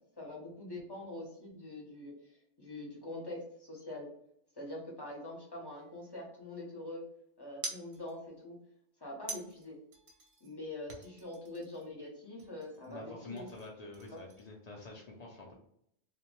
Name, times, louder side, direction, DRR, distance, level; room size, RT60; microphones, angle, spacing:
voice 1, 0.2-2.1 2.6-4.1 4.6-7.0 7.4-8.6 9.0-9.8 10.4-13.5 14.1-14.2, left 1 dB, 25° left, -3 dB, 0.6 m, -44 dB
sound 1, 5.7-6.5 7.6-8.4 9.3-10.5 10.9-12.1 12.4-13.0 13.4-14.6, right 2 dB, 50° right, 0.7 m, -47 dB
voice 2, 12.9-15.5, left 2 dB, 75° left, -1 dB, 0.3 m, -47 dB
2.8 x 2.1 x 2.9 m, 0.72 s
omnidirectional pair, 1.3 m